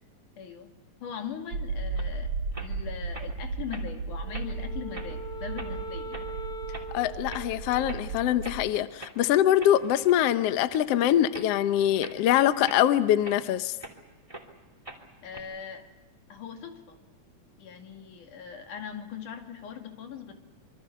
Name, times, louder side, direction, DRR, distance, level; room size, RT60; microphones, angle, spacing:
voice 1, 0.4-0.7 1.0-6.3 15.2-15.9 16.3-17.0 17.6-20.3, left 7 dB, 90° left, 3 dB, 3.9 m, -40 dB
sound 1, 1.5-8.7, right 4 dB, 60° right, 3.1 m, -35 dB
sound 2, 2.0-2.1 2.5-2.7 3.1-3.3 3.7-3.8 4.3-4.6 4.9-5.1 5.5-5.7 6.1-6.3 6.7-6.9 7.3-7.5 7.8-8.1 8.4-8.6 9.0-9.2 9.6-10.2 10.6-10.9 11.3-11.5 12.0-12.2 12.6-14.0 14.3-14.5 14.8-15.4, right 1 dB, 10° right, 2.6 m, -43 dB
Wind instrument woodwind instrument, 4.2-8.7, right 2 dB, 40° left, 1.7 m, -41 dB
voice 2, 6.9-13.8, left 11 dB, 65° left, 11 dB, 1.7 m, -24 dB
26.5 x 24.0 x 6.8 m, 1.2 s
omnidirectional pair, 3.5 m